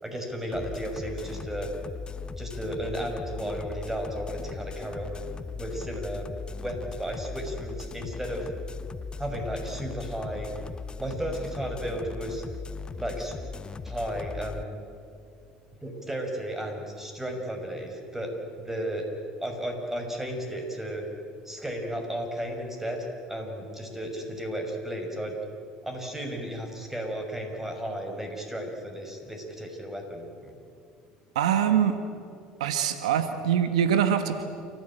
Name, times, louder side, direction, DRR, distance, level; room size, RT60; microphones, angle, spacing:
voice 1, 0.0-1.7 2.4-5.2 5.5-6.3 6.6-8.5 9.2-10.5 11.0-12.4 13.0-13.3 13.8-14.7 15.8-18.3 18.6-19.1 19.4-21.0 21.4-25.4 25.8-30.5, equal, 10° right, 3 dB, 6.1 m, -34 dB
sound 1, 0.5-14.6, left 4 dB, 25° left, 0.9 m, -38 dB
voice 2, 31.3-32.0 32.6-34.4, right 9 dB, 90° right, 9 dB, 1.3 m, -24 dB
28.5 x 15.5 x 9.1 m, 2.4 s
hypercardioid pair, 75°, 3 cm